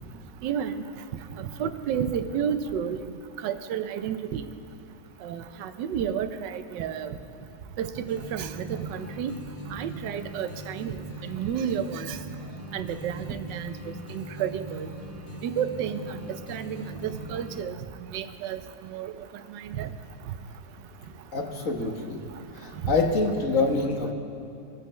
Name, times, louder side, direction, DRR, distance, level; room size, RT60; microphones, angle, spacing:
voice 1, 0.4-0.7 1.4-3.0 3.4-4.4 5.2-7.1 7.8-9.3 9.7-11.0 11.2-12.2 12.7-13.7 14.1-14.9 15.4-16.0 16.5-17.7 18.1-18.6 18.9-19.1 19.5-19.9 22.8-23.0, right 8 dB, 75° right, 10 dB, 1.3 m, -31 dB
sound 1, 8.1-17.7, equal, 80° left, 3.4 m, -40 dB
voice 2, 21.3-22.2 22.5-24.1, left 3 dB, 50° left, 2 dB, 1.5 m, -26 dB
23.5 x 9.0 x 4.3 m, 2.6 s
omnidirectional pair, 2.0 m